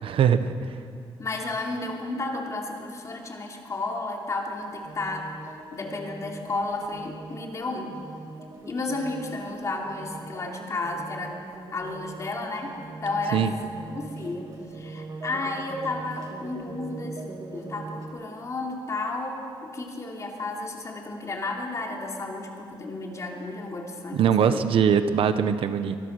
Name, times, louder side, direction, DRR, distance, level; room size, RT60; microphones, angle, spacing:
voice 1, 0.0-0.6 13.3-13.5 24.1-26.0, right 7 dB, 70° right, 10 dB, 1.0 m, -21 dB
voice 2, 1.2-5.4 5.7-8.0 8.6-11.4 11.7-12.7 13.0-13.4 13.9-24.2 24.5-24.6, left 2 dB, 35° left, 1 dB, 3.0 m, -32 dB
sound 1, 4.6-18.1, right 3 dB, 40° right, 2.9 m, -41 dB
24.0 x 20.0 x 6.5 m, 2.4 s
cardioid pair, 140°, 9 cm